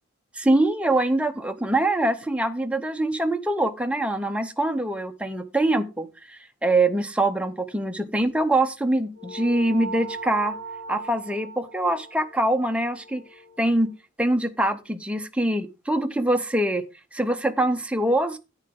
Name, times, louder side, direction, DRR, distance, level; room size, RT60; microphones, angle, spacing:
voice 1, 0.3-10.6 10.9-13.2 13.6-13.9 14.2-16.8 17.1-18.4, right 1 dB, 5° right, 6 dB, 0.8 m, -24 dB
sound 1, 9.2-14.0, right 2 dB, 65° right, 1.2 m, -38 dB
10.5 x 8.8 x 3.8 m, 0.28 s
head